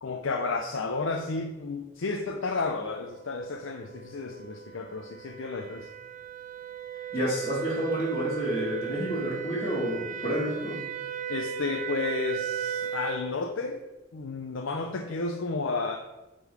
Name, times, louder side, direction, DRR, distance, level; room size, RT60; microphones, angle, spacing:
voice 1, 0.0-5.9 11.3-13.8 14.1-16.0, left 3 dB, 70° left, 3 dB, 0.6 m, -32 dB
sound 1, 3.4-13.3, right 9 dB, 40° right, 0.4 m, -36 dB
voice 2, 7.1-10.8, equal, 30° left, -11 dB, 2.0 m, -29 dB
9.2 x 3.8 x 4.8 m, 1.0 s
head